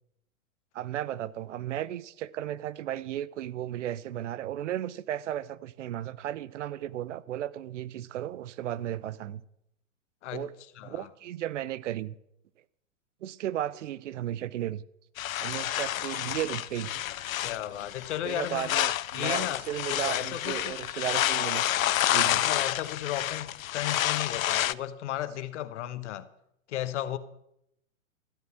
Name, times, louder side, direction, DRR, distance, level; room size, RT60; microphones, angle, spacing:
voice 1, 0.7-9.4 10.3-10.5 10.8-12.1 13.2-14.8 15.4-16.9 18.2-21.7 22.1-22.4, right 12 dB, 60° right, 0.7 m, -34 dB
voice 2, 10.8-11.1 17.4-18.7 19.1-19.6 19.9-20.8 22.2-26.3 26.7-27.2, left 12 dB, 55° left, 1.0 m, -34 dB
sound 1, 15.2-24.7, left 13 dB, 70° left, 0.6 m, -29 dB
13.5 x 9.3 x 6.0 m
hypercardioid pair, 120°, 42 cm